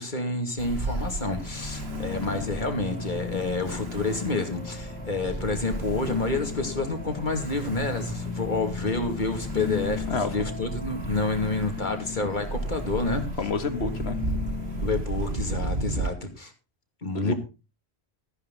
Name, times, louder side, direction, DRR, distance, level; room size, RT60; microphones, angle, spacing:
voice 1, 0.0-13.3 14.8-16.5 17.0-17.3, left 2 dB, 45° left, 5 dB, 2.6 m, -29 dB
Ocean, 0.6-16.1, right 3 dB, 70° right, 1.8 m, -35 dB
sound 1, 1.3-14.9, left 5 dB, 10° left, 2.0 m, -36 dB
sound 2, 4.8-10.3, left 1 dB, 15° right, 4.5 m, -48 dB
voice 2, 13.4-14.2 17.1-17.3, left 4 dB, 75° left, 9 dB, 1.8 m, -29 dB
14.0 x 10.0 x 4.0 m, 0.30 s
omnidirectional pair, 1.1 m